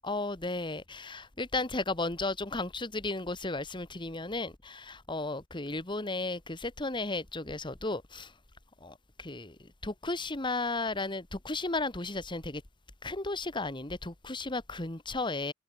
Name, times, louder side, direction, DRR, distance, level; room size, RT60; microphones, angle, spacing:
voice 1, 0.0-8.3 8.8-12.6 13.0-15.5, left 2 dB, 25° left, 1.7 m, -34 dB
head